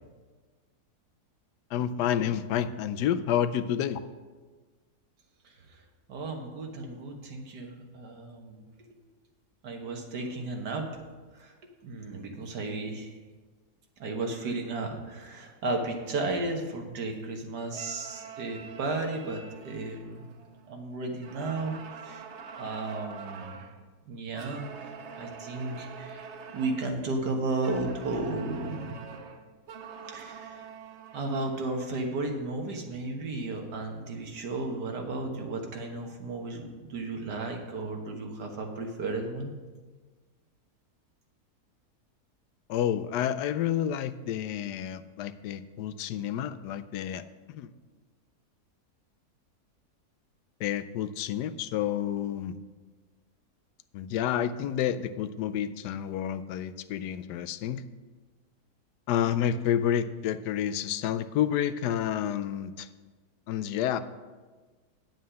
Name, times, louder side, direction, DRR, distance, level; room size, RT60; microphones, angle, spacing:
voice 1, 1.7-4.0 42.7-47.2 47.5-47.7 50.6-52.5 53.9-57.8 59.1-62.9 63.5-64.0, left 10 dB, 85° left, 12 dB, 1.2 m, -29 dB
voice 2, 5.4-5.8 6.1-8.7 9.6-10.9 11.3-11.6 11.8-13.1 14.0-20.2 20.7-21.8 22.0-22.3 22.6-23.6 24.1-29.0 30.1-30.7 31.1-39.5, right 2 dB, 85° right, 3 dB, 1.9 m, -34 dB
sound 1, 17.7-20.8 21.2-23.8 24.3-27.0 27.6-31.8, right 6 dB, 55° right, 0.9 m, -45 dB
9.5 x 7.5 x 5.6 m, 1.4 s
omnidirectional pair, 1.7 m